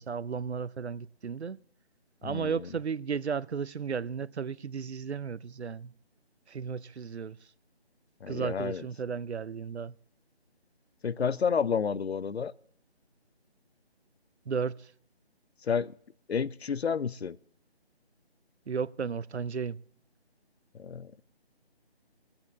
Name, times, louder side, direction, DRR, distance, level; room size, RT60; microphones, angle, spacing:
voice 1, 0.0-1.6 2.2-5.9 6.5-7.4 8.3-9.9 14.5-14.9 18.7-19.8, right 6 dB, 85° right, 0.6 m, -34 dB
voice 2, 2.2-2.7 8.2-8.8 11.0-12.5 15.6-15.9 16.3-17.4 20.7-21.2, left 6 dB, 75° left, 0.6 m, -30 dB
22.5 x 8.8 x 3.7 m
figure-of-eight pair, 160°, 32 cm